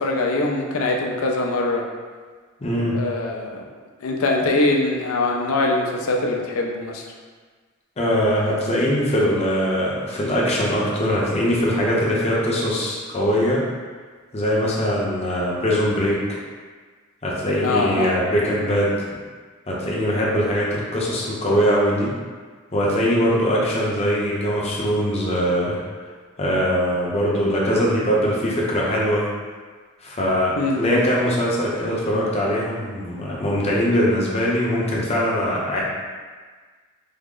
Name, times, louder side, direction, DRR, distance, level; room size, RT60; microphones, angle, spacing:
voice 1, 0.0-1.9 2.9-3.6 4.0-7.0 17.6-18.1 30.6-31.1, left 2 dB, 90° left, 1 dB, 0.5 m, -23 dB
voice 2, 2.6-3.0 8.0-13.6 14.3-16.2 17.2-18.9 19.7-22.1 22.7-25.8 26.4-29.2 30.0-35.8, equal, 30° left, -5 dB, 0.6 m, -21 dB
3.5 x 2.0 x 3.7 m, 1.5 s
head